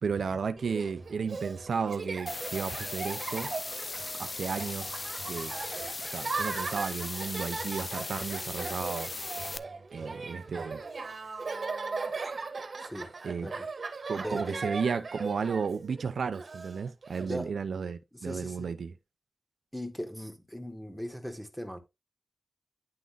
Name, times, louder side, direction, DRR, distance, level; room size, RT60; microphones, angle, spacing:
voice 1, 0.0-3.5 4.2-5.0 5.3-5.5 6.1-9.1 9.9-10.8 13.2-13.5 14.1-18.9, right 5 dB, 85° right, 0.7 m, -33 dB
Laughter, 0.6-17.3, right 4 dB, 60° right, 1.6 m, -38 dB
sound 1, 2.3-9.6, left 3 dB, 40° left, 0.7 m, -38 dB
voice 2, 12.8-13.1 13.4-13.7 14.1-14.8 17.2-17.5 18.1-18.7 19.7-21.8, equal, ahead, 2.3 m, -39 dB
10.5 x 3.7 x 4.0 m
cardioid pair, 55°, 0 cm